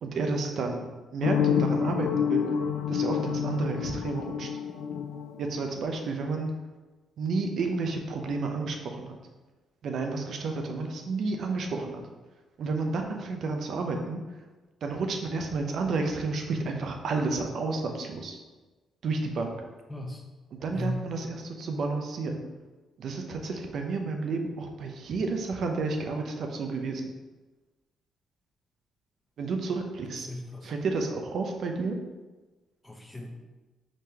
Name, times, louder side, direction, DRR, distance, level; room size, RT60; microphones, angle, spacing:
voice 1, 0.0-2.4 2.9-4.5 5.4-6.5 7.2-9.1 9.8-12.0 12.6-14.2 14.8-18.4 19.0-19.6 20.6-22.4 23.0-27.1 29.4-30.3 30.6-32.0, right 3 dB, 65° right, 3 dB, 0.6 m, -31 dB
sound 1, 1.2-6.0, left 8 dB, 85° left, 0.4 m, -28 dB
voice 2, 19.9-20.2 20.7-21.1 30.1-30.7 32.8-33.3, left 1 dB, 10° left, 1 dB, 0.8 m, -36 dB
4.9 x 3.8 x 2.9 m, 1.2 s
cardioid pair, 90°, 0 cm